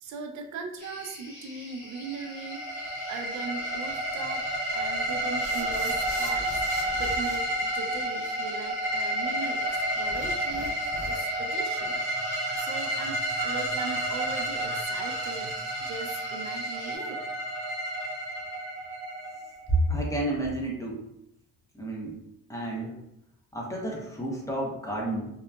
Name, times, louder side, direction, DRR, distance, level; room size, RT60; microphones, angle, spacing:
voice 1, 0.0-2.7 3.1-4.5 4.7-12.0 12.5-17.2, right 4 dB, 70° right, 4 dB, 0.4 m, -39 dB
sound 1, 0.8-17.0, left 1 dB, 35° left, 1.4 m, -47 dB
sound 2, 2.0-19.8, right 1 dB, 40° right, 0.8 m, -30 dB
sound 3, 5.4-7.4 10.1-11.4, left 1 dB, 50° left, 0.7 m, -41 dB
voice 2, 19.9-21.0 21.7-22.1 22.5-22.9 23.5-25.3, right 1 dB, 10° left, -3 dB, 0.7 m, -31 dB
2.7 x 2.3 x 2.2 m, 0.81 s
cardioid pair, 90°, 30 cm